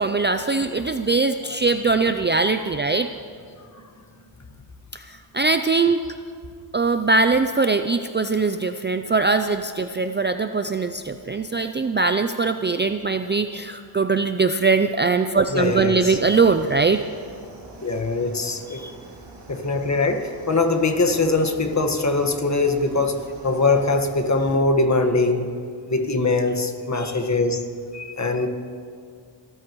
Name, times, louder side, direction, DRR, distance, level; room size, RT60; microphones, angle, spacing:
voice 1, 0.0-3.1 4.9-6.0 6.7-17.0 18.7-18.9, right 4 dB, 25° right, 8 dB, 0.4 m, -21 dB
voice 2, 15.5-16.2 17.8-18.8 19.5-25.5 25.9-27.6 27.9-28.5, left 3 dB, 35° left, 5 dB, 1.6 m, -22 dB
sound 1, 16.0-24.6, right 3 dB, 60° right, 2.8 m, -44 dB
27.0 x 13.5 x 3.1 m, 2.3 s
cardioid pair, 80°, 47 cm